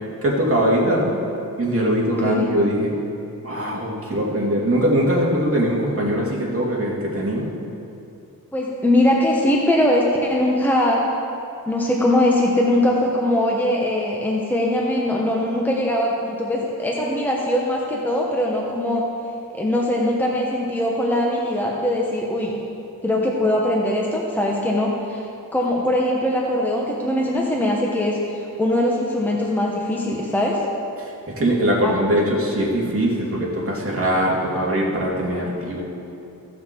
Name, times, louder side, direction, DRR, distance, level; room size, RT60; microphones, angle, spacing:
voice 1, 0.2-1.1 1.6-2.9 3.4-7.5 31.0-35.8, equal, 40° right, -4 dB, 2.4 m, -21 dB
voice 2, 2.1-2.4 8.5-11.0 11.7-19.1 19.5-22.6 23.0-25.3 25.5-30.7 31.8-32.0, left 1 dB, 5° left, -2 dB, 1.1 m, -21 dB
16.0 x 5.9 x 4.5 m, 2.7 s
wide cardioid pair, 95°, 36 cm